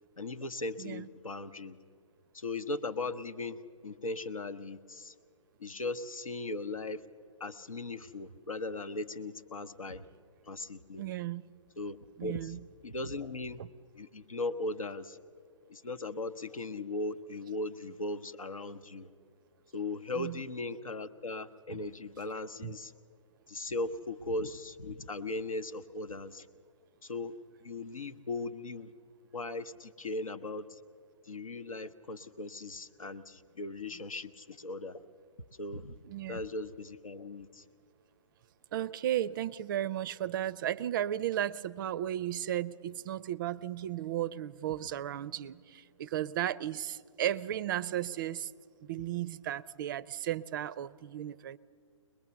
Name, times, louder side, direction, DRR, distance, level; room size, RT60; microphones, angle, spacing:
voice 1, 0.2-1.8 2.3-5.1 5.6-7.0 7.4-10.1 10.5-11.0 11.8-13.6 13.9-15.2 15.7-19.1 19.7-22.9 23.5-26.5 27.0-28.9 29.3-30.8 31.3-35.0 35.6-36.0 36.3-37.6, left 2 dB, 80° left, 9 dB, 0.9 m, -38 dB
voice 2, 0.8-1.1 11.0-11.5 12.2-12.6 20.1-20.4 21.7-21.8 22.6-22.7 36.0-36.4 38.7-48.5 48.8-51.6, right 12 dB, 40° right, 20 dB, 0.4 m, -35 dB
21.5 x 21.0 x 6.9 m, 2.2 s
figure-of-eight pair, 125°, 17 cm